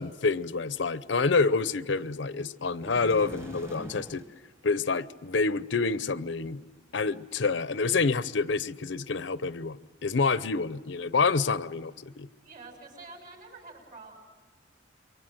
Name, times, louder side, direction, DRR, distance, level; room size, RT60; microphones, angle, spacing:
voice 1, 0.0-4.2 4.6-6.6 6.9-9.8 10.0-12.3, left 4 dB, 70° left, 0.7 m, -27 dB
sound 1, 2.8-4.3, equal, 15° right, 1.4 m, -43 dB
voice 2, 12.4-14.2, right 3 dB, 45° right, 7.1 m, -47 dB
29.0 x 23.5 x 7.9 m
head